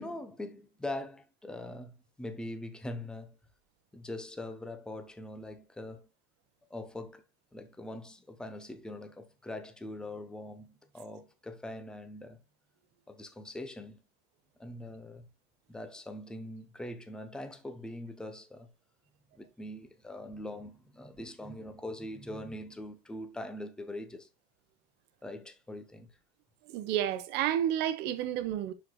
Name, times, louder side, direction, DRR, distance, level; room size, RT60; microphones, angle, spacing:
voice 1, 0.0-3.4 3.9-6.1 6.7-7.2 7.5-12.4 13.1-14.0 14.6-15.3 15.7-18.7 19.3-24.3 25.2-26.1, left 1 dB, 5° left, 0.6 m, -42 dB
voice 2, 26.7-28.7, right 11 dB, 35° right, 1.0 m, -30 dB
12.0 x 4.8 x 2.2 m
supercardioid pair, 160°, 31 cm